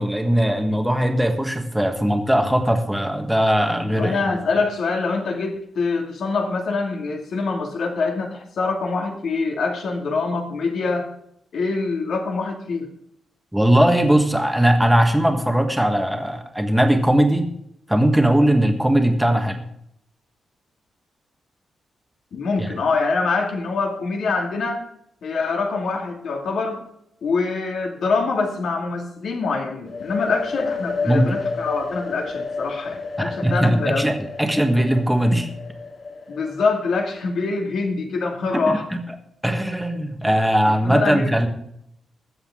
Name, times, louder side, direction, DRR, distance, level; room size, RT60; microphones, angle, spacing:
voice 1, 0.0-4.4 13.5-17.5 17.9-19.6 22.6-22.7 31.1-31.3 33.2-35.5 38.5-39.0 39.4-41.5, right 1 dB, ahead, 5 dB, 1.5 m, -19 dB
voice 2, 3.9-11.1 11.5-12.9 22.3-24.8 25.2-26.8 27.2-34.1 36.3-38.8 40.8-41.5, left 4 dB, 65° left, 1 dB, 2.5 m, -24 dB
sound 1, 29.9-37.5, left 4 dB, 50° left, 2.8 m, -31 dB
21.0 x 7.9 x 3.8 m, 0.73 s
wide cardioid pair, 170°, 0 cm